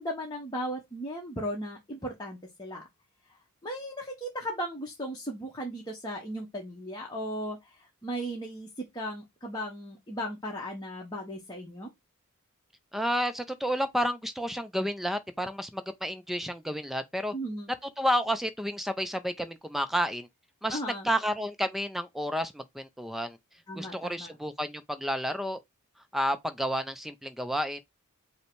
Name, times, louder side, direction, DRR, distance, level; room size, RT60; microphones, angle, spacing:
voice 1, 0.0-2.8 3.6-8.7 8.9-11.9 17.3-17.7 20.7-21.1 23.7-24.3, equal, 20° left, 0.9 m, -36 dB
voice 2, 12.9-17.3 18.0-20.3 20.6-23.4 23.8-25.6 26.1-27.8, equal, ahead, 0.4 m, -31 dB
5.4 x 2.1 x 4.5 m
head